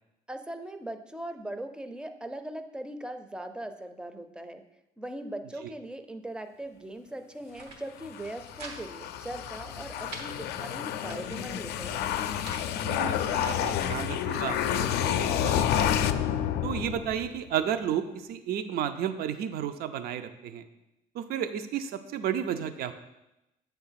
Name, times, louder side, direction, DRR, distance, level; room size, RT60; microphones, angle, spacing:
voice 1, 0.3-4.6 5.0-12.1, right 1 dB, 5° right, 8 dB, 0.5 m, -40 dB
sound 1, 7.3-7.8 8.2-8.8 9.1-9.2 9.5-10.3 10.8-11.4 12.1-12.7 13.3-14.1, right 3 dB, 90° right, 1.2 m, -46 dB
sound 2, 8.0-17.4, left 10 dB, 75° left, 0.4 m, -29 dB
voice 2, 12.8-15.9 16.6-20.6 21.1-22.9, right 9 dB, 65° right, 10 dB, 0.5 m, -32 dB
7.6 x 3.5 x 5.7 m, 0.92 s
cardioid pair, 110°, 17 cm